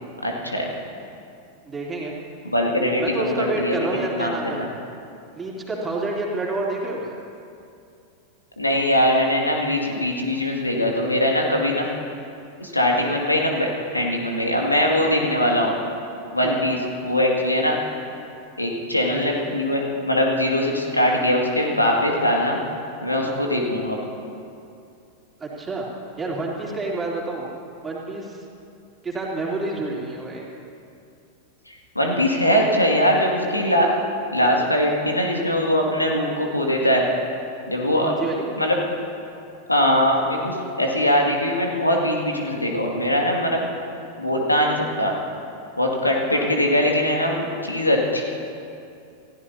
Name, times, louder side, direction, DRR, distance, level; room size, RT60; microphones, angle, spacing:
voice 1, 0.2-0.7 2.4-4.7 8.6-11.8 12.6-15.7 16.3-17.8 18.6-22.6 23.0-24.0 31.7-33.9 34.3-37.1 37.7-38.1 38.6-38.8 39.7-43.6 44.2-45.1 45.8-48.2, left 1 dB, 85° left, 0 dB, 2.3 m, -21 dB
voice 2, 1.7-2.1 3.0-4.7 5.3-7.1 16.4-16.6 19.1-19.6 23.2-23.4 25.4-25.9 26.2-27.5 27.8-28.4 29.0-30.5 38.0-38.5 46.3-46.5, right 2 dB, 15° right, -3 dB, 3.2 m, -29 dB
28.5 x 15.5 x 2.9 m, 2.5 s
figure-of-eight pair, 90°, 0 cm